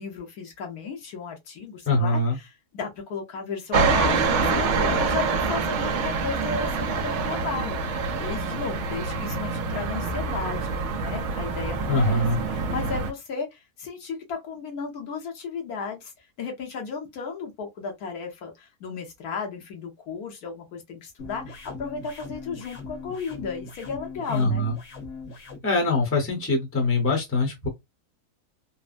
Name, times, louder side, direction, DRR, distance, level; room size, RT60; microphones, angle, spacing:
voice 1, 0.0-24.6, left 5 dB, 75° left, 1.4 m, -34 dB
voice 2, 1.9-2.4 11.9-12.4 24.3-24.8 25.6-27.7, left 2 dB, 10° left, 0.7 m, -23 dB
sound 1, 3.7-13.1, right 4 dB, 60° right, 0.8 m, -26 dB
sound 2, 21.2-25.6, left 3 dB, 55° left, 1.2 m, -40 dB
3.5 x 2.0 x 2.5 m
omnidirectional pair, 1.6 m